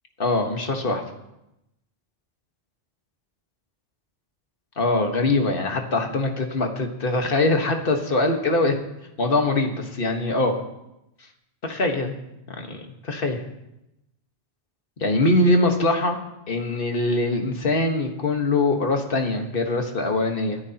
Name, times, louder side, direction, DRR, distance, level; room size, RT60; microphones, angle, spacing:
voice 1, 0.2-1.0 4.8-8.8 9.2-10.6 11.6-12.1 12.6-13.4 15.0-16.2 16.5-20.6, left 2 dB, 55° left, 4 dB, 1.6 m, -23 dB
24.0 x 9.6 x 2.9 m, 0.89 s
omnidirectional pair, 1.1 m